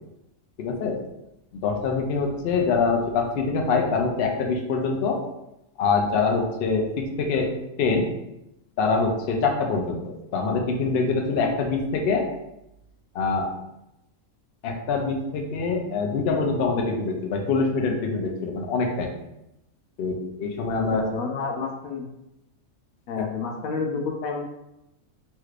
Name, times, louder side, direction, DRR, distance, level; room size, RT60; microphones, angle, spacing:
voice 1, 0.6-1.0 1.6-5.2 5.8-7.5 7.8-8.1 8.8-12.3 13.1-13.5 14.6-19.1 20.0-21.0 23.1-23.2, left 4 dB, 65° left, 2 dB, 0.6 m, -24 dB
voice 2, 20.9-22.0 23.1-24.5, left 4 dB, 80° left, 1 dB, 1.0 m, -30 dB
3.2 x 3.2 x 2.4 m, 0.87 s
omnidirectional pair, 1.5 m